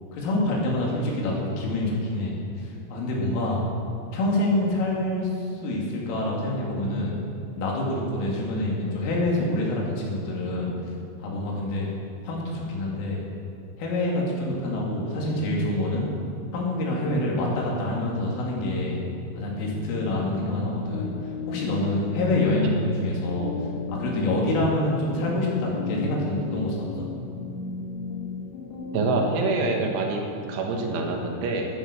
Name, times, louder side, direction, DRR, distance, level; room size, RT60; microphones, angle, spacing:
voice 1, 0.1-3.6 4.1-5.3 5.6-7.1 7.6-10.8 11.2-11.9 12.2-13.2 13.8-16.1 16.5-19.0 19.4-21.1 21.5-23.5 23.9-27.1, left 1 dB, 90° left, -3 dB, 5.1 m, -26 dB
sound 1, 19.5-29.4, left 4 dB, 60° left, 2.2 m, -33 dB
voice 2, 28.9-30.2 30.5-31.7, right 3 dB, 80° right, 1 dB, 3.9 m, -25 dB
13.0 x 11.0 x 6.6 m, 2.5 s
omnidirectional pair, 5.6 m